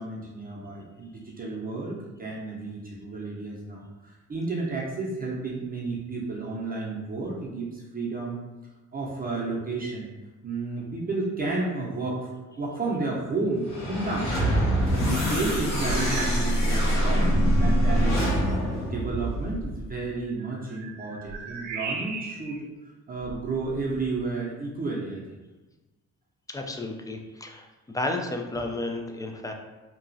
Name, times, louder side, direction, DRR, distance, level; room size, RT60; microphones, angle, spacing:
voice 1, 0.0-8.4 8.9-10.1 10.4-12.3 12.6-14.4 14.8-18.3 18.8-22.7 23.1-25.2, right 3 dB, 30° right, -5 dB, 0.6 m, -32 dB
sound 1, 13.6-19.9, equal, 60° left, 1.2 m, -24 dB
sound 2, 15.8-16.5 16.8-17.1 17.8-17.9 20.3-22.6 23.2-24.2, right 4 dB, 70° right, 0.5 m, -37 dB
voice 2, 26.5-29.5, left 2 dB, 10° left, 3 dB, 0.3 m, -32 dB
2.9 x 2.3 x 2.6 m, 1.2 s
cardioid pair, 90°, 30 cm